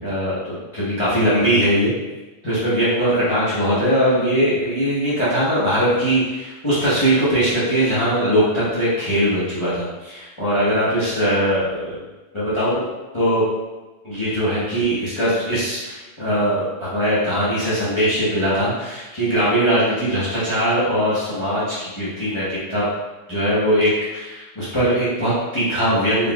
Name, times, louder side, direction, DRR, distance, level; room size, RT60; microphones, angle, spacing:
voice 1, 0.0-1.9 2.4-12.0 12.3-12.8 13.1-13.4 14.0-22.8 23.3-26.3, equal, 25° left, -12 dB, 1.0 m, -20 dB
4.0 x 3.4 x 2.4 m, 1.2 s
omnidirectional pair, 1.3 m